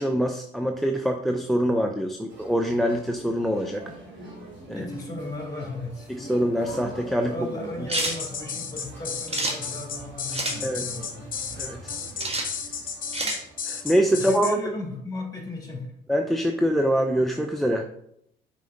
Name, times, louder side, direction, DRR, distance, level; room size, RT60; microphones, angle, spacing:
voice 1, 0.0-3.8 4.7-4.8 6.1-7.3 10.6-10.9 11.6-11.9 13.7-14.6 16.1-17.8, equal, ahead, 5 dB, 0.5 m, -24 dB
sound 1, 2.3-14.4, right 2 dB, 65° right, 2.6 m, -43 dB
voice 2, 4.7-6.8 7.3-11.2 14.1-15.9, left 2 dB, 20° left, 1 dB, 2.6 m, -36 dB
sound 2, 7.9-14.5, left 6 dB, 45° left, 1.1 m, -33 dB
sound 3, 7.9-8.2 9.3-9.6 10.3-10.6 12.2-12.5 13.1-13.4, right 2 dB, 30° right, 1.4 m, -28 dB
6.3 x 4.4 x 3.8 m, 0.74 s
supercardioid pair, 70°, 20 cm